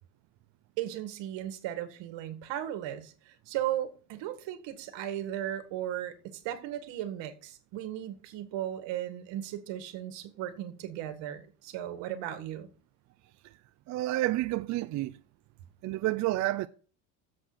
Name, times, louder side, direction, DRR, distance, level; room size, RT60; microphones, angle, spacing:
voice 1, 0.8-12.7, right 12 dB, 60° right, 2.0 m, -36 dB
voice 2, 13.9-15.2 15.8-16.7, right 16 dB, 40° right, 0.4 m, -29 dB
7.8 x 6.6 x 7.9 m
cardioid pair, 135°, 50 cm